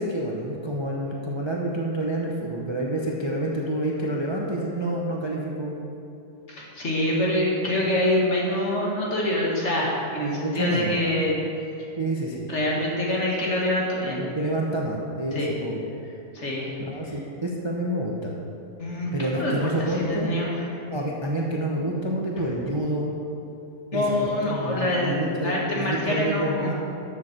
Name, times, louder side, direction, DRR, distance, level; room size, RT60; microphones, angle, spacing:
voice 1, 0.0-5.8 10.2-10.9 12.0-12.4 13.1-13.2 14.2-15.8 16.8-18.3 19.1-20.3 20.9-23.2 23.9-26.7, right 1 dB, 25° right, -2 dB, 0.7 m, -28 dB
voice 2, 6.5-11.4 12.5-14.2 15.3-15.6 16.3-16.8 18.8-20.5 23.9-26.7, left 1 dB, 50° left, -4 dB, 2.1 m, -25 dB
13.0 x 7.3 x 4.4 m, 2.7 s
omnidirectional pair, 1.6 m